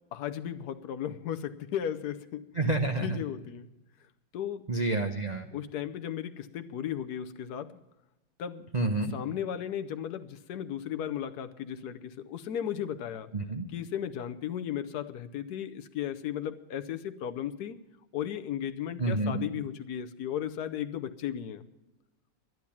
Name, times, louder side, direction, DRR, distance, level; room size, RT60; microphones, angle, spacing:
voice 1, 0.0-2.5 3.0-3.7 4.3-4.7 5.5-7.8 8.4-8.7 9.1-13.3 13.7-17.8 18.1-21.7, left 10 dB, 65° left, 10 dB, 1.1 m, -35 dB
voice 2, 2.6-3.2 4.7-5.5 8.7-9.1 13.3-13.7 19.0-19.5, right 2 dB, 50° right, 4 dB, 0.5 m, -28 dB
12.0 x 11.0 x 7.1 m, 1.0 s
omnidirectional pair, 2.0 m